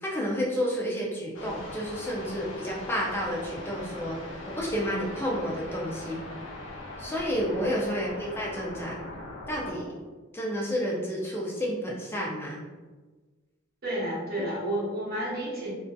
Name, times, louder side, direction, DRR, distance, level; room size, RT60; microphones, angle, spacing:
voice 1, 0.0-4.2 4.5-6.2 7.0-9.0 9.5-9.9 10.3-12.6, equal, 10° left, -3 dB, 0.4 m, -30 dB
sound 1, 1.3-9.9, left 2 dB, 75° left, 0.5 m, -41 dB
voice 2, 13.8-15.7, right 1 dB, 50° right, -6 dB, 0.8 m, -31 dB
2.5 x 2.4 x 2.3 m, 1.3 s
head